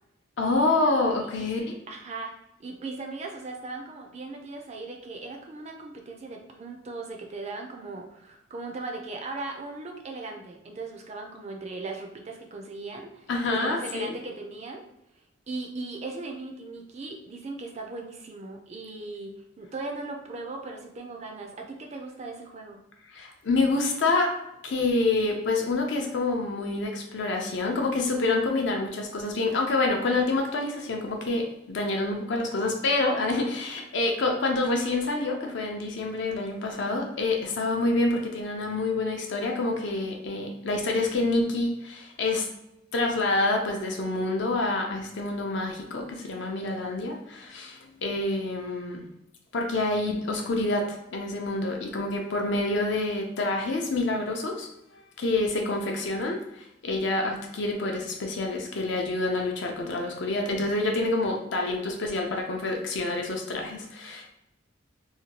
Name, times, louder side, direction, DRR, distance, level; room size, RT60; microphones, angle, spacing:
voice 1, 0.4-1.8 13.3-14.2 23.1-24.3 24.6-42.5 42.9-49.1 49.5-54.7 55.2-64.3, left 2 dB, 60° left, 2 dB, 0.5 m, -27 dB
voice 2, 1.9-2.3 2.6-14.8 15.5-22.8, right 3 dB, 30° right, 2 dB, 0.4 m, -38 dB
2.8 x 2.2 x 2.8 m, 0.83 s
head